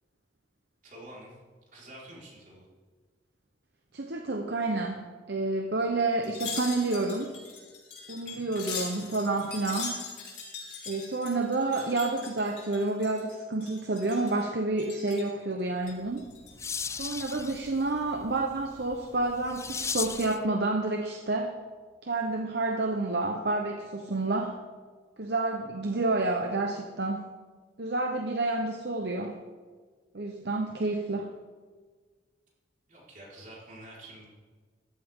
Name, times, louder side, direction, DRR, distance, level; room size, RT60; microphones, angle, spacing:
voice 1, 0.8-1.4 1.7-2.7 8.2-8.4 32.9-34.3, right 1 dB, 50° right, -5 dB, 5.0 m, -48 dB
voice 2, 3.9-7.4 8.1-10.0 10.9-16.3 16.9-21.6 22.0-24.6 25.2-27.2 27.8-29.4 30.1-31.3, right 2 dB, 70° right, 4 dB, 1.0 m, -29 dB
Wind chime, 6.2-13.3 13.6-14.4 14.8-15.3 15.8-16.7 17.1-17.2, left 5 dB, 75° left, 4.6 m, -41 dB
sound 1, 16.0-20.5, left 5 dB, 15° left, 0.3 m, -37 dB
14.5 x 13.0 x 3.8 m, 1.5 s
head